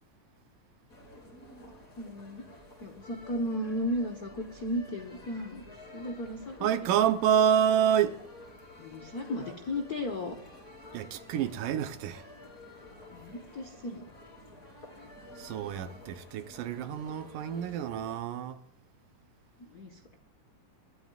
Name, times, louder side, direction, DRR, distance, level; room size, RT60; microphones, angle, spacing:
sound 1, 0.9-18.2, left 1 dB, 25° left, 3.4 m, -51 dB
voice 1, 2.0-2.4 2.8-5.6 5.9-6.9 8.8-10.4 13.1-14.1 19.6-20.0, left 1 dB, 85° left, 0.8 m, -35 dB
voice 2, 6.6-8.2 10.9-12.2 15.4-18.6, right 9 dB, 80° right, 2.5 m, -28 dB
28.0 x 13.0 x 2.4 m
omnidirectional pair, 3.8 m